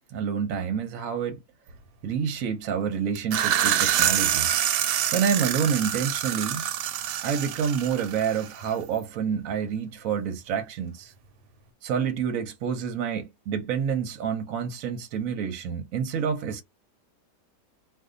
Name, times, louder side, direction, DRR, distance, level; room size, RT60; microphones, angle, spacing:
voice 1, 0.1-1.4 2.0-4.5 5.1-6.7 7.2-11.1 11.8-16.6, right 7 dB, 65° right, 1.0 m, -28 dB
sound 1, 3.2-8.7, right 10 dB, 90° right, 1.2 m, -26 dB
2.6 x 2.4 x 3.7 m
omnidirectional pair, 1.8 m